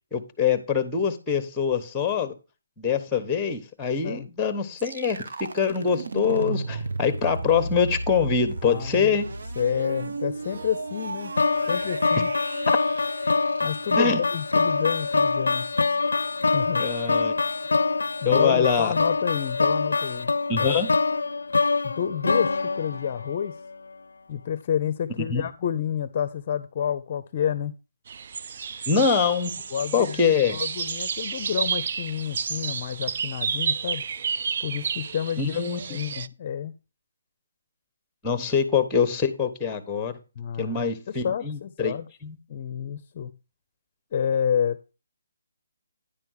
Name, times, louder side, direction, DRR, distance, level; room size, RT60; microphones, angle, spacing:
voice 1, 0.1-2.3 2.8-5.2 5.5-9.3 14.0-14.2 16.8-17.4 18.2-18.9 20.5-20.9 25.3-25.4 28.9-29.6 29.9-30.6 35.4-35.8 38.2-40.1 40.6-41.9 42.2-42.4, left 6 dB, 10° left, 1.0 m, -24 dB
sound 1, 4.8-14.6, right 2 dB, 70° right, 0.8 m, -34 dB
voice 2, 8.6-9.1 9.6-11.3 11.7-12.3 13.6-15.7 16.5-16.9 18.2-20.3 20.6-20.8 21.8-23.6 24.3-27.7 29.7-34.0 34.6-35.6 35.9-36.7 40.4-42.1 42.5-43.3 44.1-44.9, left 8 dB, 35° left, 0.6 m, -29 dB
sound 2, 11.4-23.6, left 3 dB, 85° left, 0.4 m, -24 dB
sound 3, 28.1-36.3, right 6 dB, 45° right, 0.4 m, -31 dB
10.0 x 3.4 x 6.4 m
hypercardioid pair, 165°, 0 cm